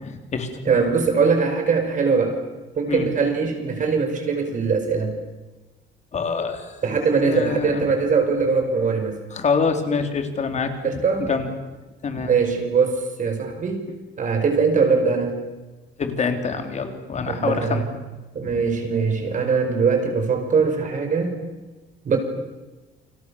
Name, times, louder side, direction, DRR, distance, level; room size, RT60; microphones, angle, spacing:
voice 1, 0.0-0.5 2.9-3.1 6.1-6.8 7.2-7.9 9.3-11.5 12.0-12.3 16.0-17.9, left 5 dB, 35° left, 6 dB, 3.7 m, -26 dB
voice 2, 0.7-2.4 2.8-5.1 6.8-9.2 10.8-11.3 12.2-13.9 14.2-15.4 17.3-17.8 18.3-21.4 22.0-22.2, right 5 dB, 40° right, 5 dB, 5.7 m, -21 dB
29.5 x 25.5 x 7.3 m, 1.2 s
cardioid pair, 165°, 20 cm